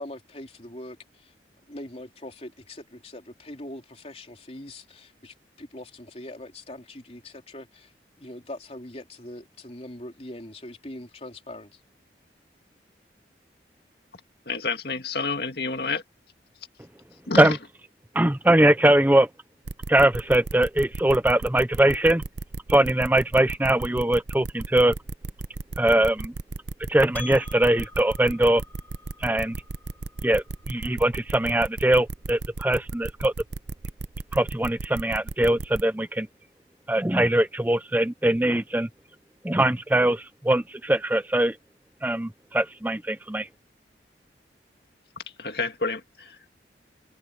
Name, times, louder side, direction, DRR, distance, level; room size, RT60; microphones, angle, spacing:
voice 1, 0.0-1.3 1.7-11.8, left 1 dB, 35° left, 3.8 m, -42 dB
voice 2, 14.5-16.0 17.3-17.6 45.2-46.5, left 4 dB, 60° left, 2.2 m, -29 dB
voice 3, 18.1-19.3 19.9-22.2 22.7-25.0 25.8-26.3 26.9-28.6 29.2-29.6 30.2-33.3 34.3-36.3 36.9-38.9 39.4-41.6 42.0-43.5, right 1 dB, 10° right, 0.6 m, -21 dB
sound 1, 19.7-35.8, right 3 dB, 85° right, 0.8 m, -34 dB
Percussion, 27.2-32.0, left 4 dB, 10° left, 1.8 m, -48 dB
head